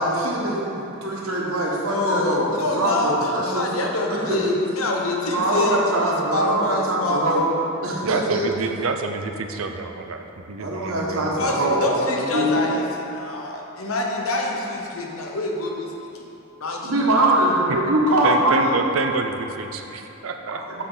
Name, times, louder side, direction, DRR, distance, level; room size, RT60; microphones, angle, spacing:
voice 1, 0.0-2.5 2.7-3.7 4.1-4.4 5.3-7.4 7.8-8.4 10.6-12.5 16.8-18.7 20.5-20.8, right 1 dB, 90° right, -3 dB, 1.4 m, -22 dB
voice 2, 1.8-7.4 11.3-16.3 16.6-17.0, left 2 dB, 80° left, 0 dB, 1.1 m, -26 dB
voice 3, 8.0-11.3 18.2-20.8, right 4 dB, 75° right, 5 dB, 0.6 m, -28 dB
8.2 x 6.5 x 3.9 m, 2.9 s
head